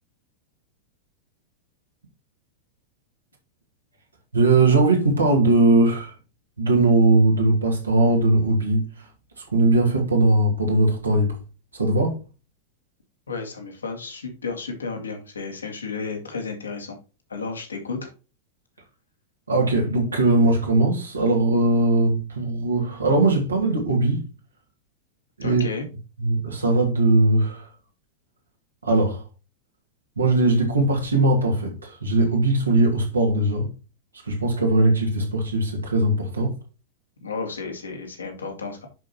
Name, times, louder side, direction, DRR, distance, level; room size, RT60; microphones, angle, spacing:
voice 1, 4.3-6.2 6.6-11.4 11.7-12.2 19.5-24.3 25.4-25.6 26.2-27.7 28.8-29.3 30.2-33.7 34.1-36.6, right 2 dB, 75° right, 2.3 m, -20 dB
voice 2, 13.3-17.0 17.3-18.1 25.4-25.9 37.2-38.9, left 4 dB, 75° left, 2.4 m, -32 dB
10.5 x 5.3 x 3.0 m
figure-of-eight pair, 90°, 0 cm